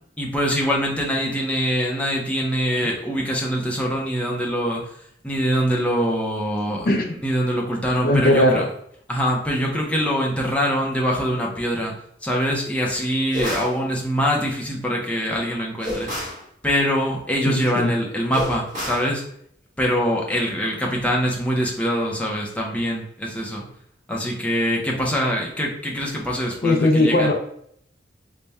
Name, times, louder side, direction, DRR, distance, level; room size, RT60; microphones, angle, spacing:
voice 1, 0.2-4.8 5.2-6.9 7.2-8.6 9.1-11.9 12.2-16.1 16.6-19.2 19.8-23.6 24.1-27.3, equal, 5° left, -2 dB, 0.6 m, -23 dB
voice 2, 8.0-8.7 17.4-17.9 26.6-27.3, left 1 dB, 55° left, 2 dB, 0.5 m, -18 dB
sound 1, 13.3-13.8 15.8-16.4 18.3-19.1, equal, 45° right, 1.4 m, -29 dB
4.1 x 2.2 x 3.4 m, 0.69 s
head